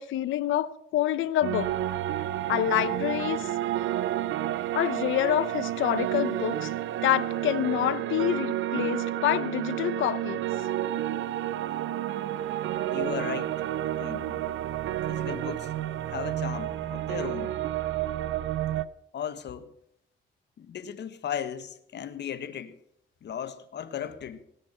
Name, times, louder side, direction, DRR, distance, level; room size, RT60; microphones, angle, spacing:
voice 1, 0.0-1.7 2.5-3.5 4.7-6.7 7.0-10.4, left 12 dB, 80° left, 0.9 m, -27 dB
sound 1, 1.4-18.8, right 12 dB, 75° right, 0.7 m, -30 dB
voice 2, 12.9-13.6 14.0-14.4 15.1-15.7 16.1-17.5 19.1-19.7 20.6-22.8 23.2-24.4, left 9 dB, 60° left, 1.5 m, -36 dB
18.0 x 10.0 x 5.6 m
cardioid pair, 90°, 20 cm